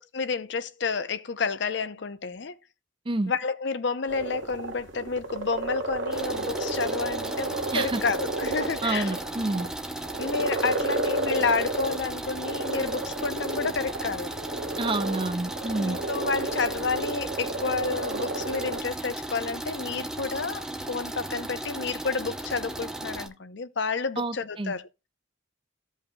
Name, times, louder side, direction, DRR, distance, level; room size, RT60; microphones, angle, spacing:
voice 1, 0.1-2.6 3.3-9.1 10.2-14.3 15.8-25.1, left 4 dB, 60° left, 0.6 m, -30 dB
sound 1, 4.1-18.8, right 2 dB, 65° right, 1.0 m, -33 dB
sound 2, 6.1-23.3, right 1 dB, 5° right, 0.9 m, -36 dB
voice 2, 8.8-9.7 14.8-16.0 24.2-24.7, right 2 dB, 25° right, 0.6 m, -28 dB
15.5 x 5.5 x 2.3 m
head